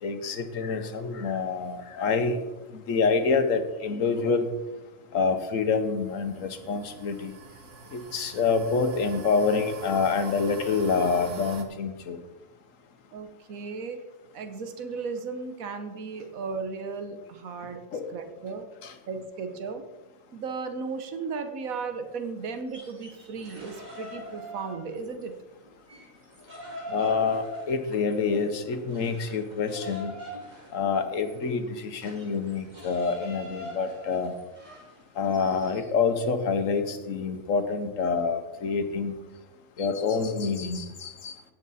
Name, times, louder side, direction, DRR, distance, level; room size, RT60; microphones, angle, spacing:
voice 1, 0.0-2.4 2.7-4.5 5.1-7.3 7.9-12.2 17.9-18.1 18.8-18.9 26.9-30.1 30.7-34.3 35.1-39.2 39.8-41.4, left 5 dB, 75° left, 8 dB, 1.3 m, -27 dB
sound 1, 5.6-11.6, right 6 dB, 65° right, 1.4 m, -45 dB
voice 2, 13.1-14.0 14.3-17.8 18.1-18.7 19.1-19.9 20.3-25.4, right 4 dB, 85° right, 7 dB, 1.4 m, -35 dB
sound 2, 22.6-25.3 25.6-35.9, equal, 30° right, 2.7 m, -43 dB
16.5 x 6.0 x 4.1 m, 1.1 s
omnidirectional pair, 1.4 m